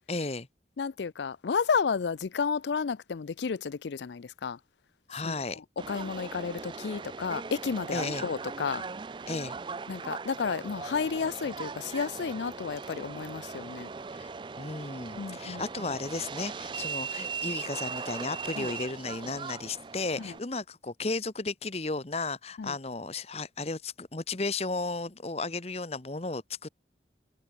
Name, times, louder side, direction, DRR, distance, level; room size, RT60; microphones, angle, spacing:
voice 1, 0.1-0.5 5.1-5.6 7.9-8.3 9.3-9.6 14.1-14.3 14.6-26.7, left 3 dB, 35° left, 1.0 m, -34 dB
voice 2, 0.8-4.6 5.2-5.6 5.9-8.8 9.9-13.9 15.1-15.9 18.6-18.7 20.2-20.3 22.6-22.7, left 5 dB, 70° left, 0.5 m, -32 dB
Subway metro underground, 5.8-20.4, right 5 dB, 25° right, 0.3 m, -39 dB
head